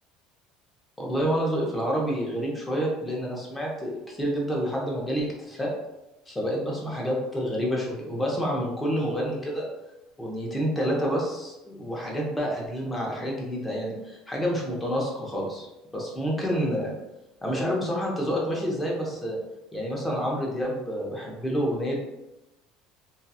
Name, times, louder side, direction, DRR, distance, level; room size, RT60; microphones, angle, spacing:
voice 1, 1.0-5.7 6.3-9.7 10.2-15.7 15.9-16.9 17.4-19.4 19.7-22.1, equal, 10° left, -3 dB, 0.7 m, -28 dB
2.8 x 2.2 x 2.3 m, 0.96 s
cardioid pair, 130°, 0 cm